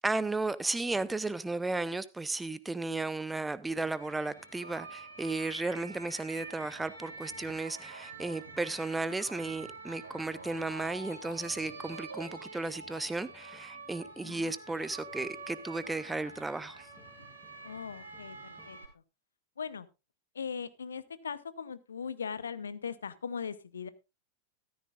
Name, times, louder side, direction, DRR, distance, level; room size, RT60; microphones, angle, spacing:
voice 1, 0.0-16.9, right 3 dB, 10° right, 0.7 m, -34 dB
sound 1, 3.8-18.8, right 3 dB, 80° right, 3.1 m, -47 dB
sound 2, 4.1-18.8, left 1 dB, 15° left, 2.7 m, -64 dB
voice 2, 14.2-14.5 17.6-18.8 19.6-19.9 20.3-23.9, left 6 dB, 70° left, 0.8 m, -39 dB
14.0 x 13.0 x 2.4 m
figure-of-eight pair, 90°, 0 cm